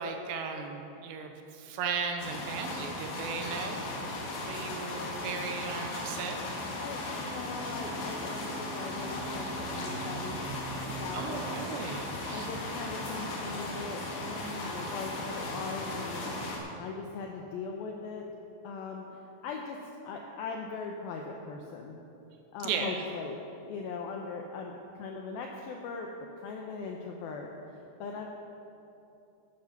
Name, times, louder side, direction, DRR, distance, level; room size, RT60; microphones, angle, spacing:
voice 1, 0.0-3.8 4.5-6.4 11.1-12.5 22.6-23.0, right 5 dB, 80° right, 4 dB, 2.8 m, -36 dB
sound 1, 2.2-16.6, left 1 dB, 60° left, 3.3 m, -36 dB
voice 2, 6.7-10.5 10.8-11.4 12.3-16.3 16.8-18.2 18.6-19.2 19.4-19.8 20.0-22.0 22.5-23.4 23.7-26.1 26.4-27.5 28.0-28.3, left 4 dB, 85° left, 1 dB, 2.1 m, -40 dB
12.5 x 9.3 x 5.8 m, 2.9 s
omnidirectional pair, 5.2 m